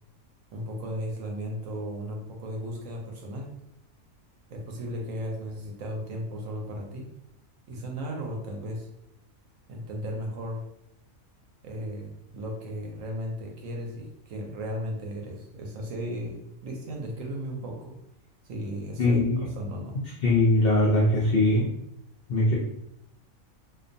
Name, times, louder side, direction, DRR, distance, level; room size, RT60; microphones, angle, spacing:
voice 1, 0.5-3.5 4.5-7.1 7.7-8.9 9.7-10.6 11.6-18.0 18.4-19.2 19.6-20.0, equal, 70° right, 0 dB, 0.9 m, -35 dB
voice 2, 19.0-19.5 20.2-21.7 22.3-22.5, left 1 dB, 65° left, -4 dB, 0.5 m, -21 dB
2.4 x 2.2 x 2.5 m, 0.77 s
omnidirectional pair, 1.5 m